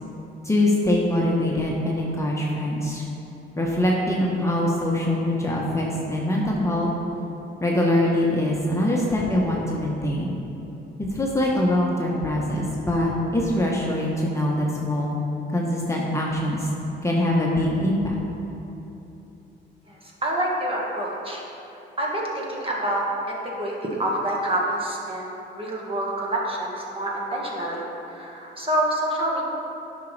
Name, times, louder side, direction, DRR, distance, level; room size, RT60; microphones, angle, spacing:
voice 1, 0.4-3.0 3.6-6.9 7.6-10.4 11.1-15.2 15.5-16.7 17.0-18.1, left 1 dB, 15° left, -4 dB, 1.0 m, -23 dB
voice 2, 20.2-21.4 22.0-27.8 28.1-29.4, right 1 dB, 25° right, -3 dB, 1.6 m, -27 dB
10.0 x 6.0 x 3.3 m, 3.0 s
cardioid pair, 90°, 20 cm